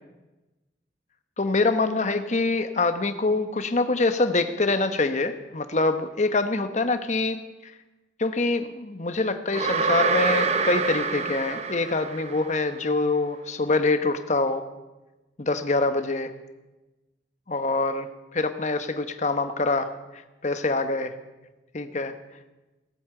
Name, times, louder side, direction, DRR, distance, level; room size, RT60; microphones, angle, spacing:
voice 1, 1.4-7.7 8.2-14.6 15.4-16.3 17.5-21.2 21.7-22.2, left 3 dB, 40° left, 9 dB, 1.0 m, -25 dB
sound 1, 9.5-12.6, right 4 dB, 35° right, 0.9 m, -26 dB
17.0 x 8.6 x 7.8 m, 1.1 s
head